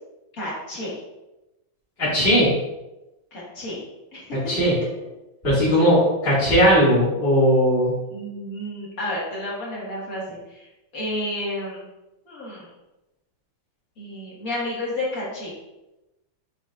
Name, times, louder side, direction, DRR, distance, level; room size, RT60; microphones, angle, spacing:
voice 1, 0.3-0.9 3.3-3.8 4.1-4.4 5.8-5.9 8.1-10.7 10.9-11.8 12.3-12.7 14.0-15.5, left 1 dB, 45° left, -6 dB, 2.1 m, -31 dB
voice 2, 2.0-2.5 4.5-4.8 5.4-7.9, equal, 30° left, -12 dB, 2.4 m, -18 dB
6.3 x 6.1 x 2.5 m, 0.98 s
omnidirectional pair, 2.1 m